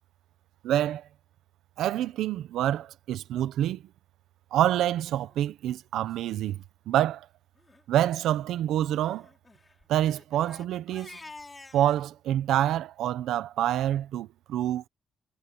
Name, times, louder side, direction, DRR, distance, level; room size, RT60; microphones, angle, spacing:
voice 1, 0.6-1.0 1.8-3.8 4.5-7.3 7.9-9.3 9.9-11.2 11.7-14.9, right 12 dB, 80° right, 1.1 m, -27 dB
Crying sobbing, 5.2-5.4 6.1-6.2 6.4-6.6 6.9-7.1 7.6-7.8 9.0-12.0, left 3 dB, 20° left, 6.8 m, -50 dB
cardioid pair, 90°, 0 cm